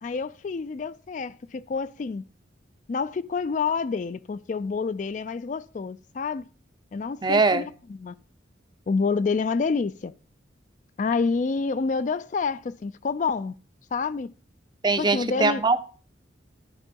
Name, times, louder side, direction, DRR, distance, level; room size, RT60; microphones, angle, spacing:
voice 1, 0.0-2.2 2.9-6.4 6.9-7.6 7.9-8.1 8.9-10.1 11.0-13.5 13.9-14.3 15.0-15.6, left 4 dB, 40° left, 0.3 m, -28 dB
voice 2, 7.2-7.6 14.8-15.8, right 3 dB, 25° right, 0.6 m, -21 dB
13.0 x 4.5 x 5.2 m
head